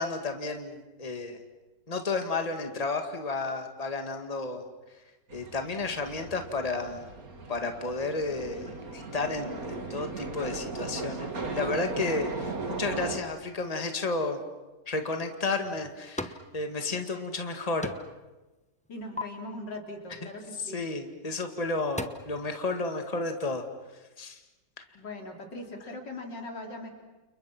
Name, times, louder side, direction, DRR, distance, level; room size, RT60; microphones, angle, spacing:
voice 1, 0.0-1.4 1.9-4.7 5.3-7.0 7.5-14.4 14.9-17.9 20.6-23.6 24.2-24.4, left 3 dB, 20° left, 5 dB, 2.1 m, -32 dB
sound 1, 5.3-13.2, right 3 dB, 55° right, 2.9 m, -37 dB
sound 2, 15.4-16.5 16.8-17.5 17.8-18.3 18.6-19.2 21.0-21.2 21.6-22.1, left 1 dB, 5° left, 0.8 m, -38 dB
voice 2, 18.9-20.8 24.9-26.9, left 1 dB, 90° left, 3 dB, 4.2 m, -40 dB
30.0 x 29.5 x 6.1 m, 1.1 s
omnidirectional pair, 1.9 m